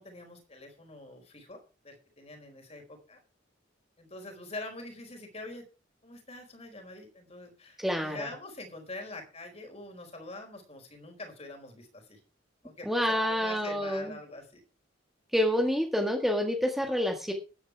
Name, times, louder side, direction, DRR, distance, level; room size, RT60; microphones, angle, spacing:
voice 1, 0.0-1.6 1.8-3.2 4.0-5.6 6.0-12.2 12.6-14.6, left 2 dB, 35° left, 4 dB, 4.5 m, -44 dB
voice 2, 7.8-8.3 12.8-14.1 15.3-17.3, equal, ahead, 2 dB, 1.7 m, -28 dB
14.0 x 9.7 x 4.7 m, 0.34 s
head